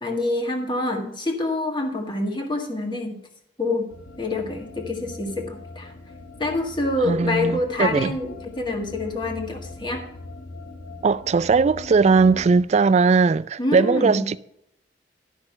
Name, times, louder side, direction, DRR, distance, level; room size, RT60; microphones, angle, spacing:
voice 1, 0.0-3.2 3.6-3.9 4.2-5.9 6.4-10.1 13.6-14.3, left 2 dB, 25° left, 1.7 m, -26 dB
sound 1, 3.9-12.6, left 2 dB, 60° left, 1.0 m, -41 dB
voice 2, 7.0-8.2 11.0-14.4, right 4 dB, 35° right, 0.3 m, -19 dB
12.0 x 6.2 x 5.5 m
head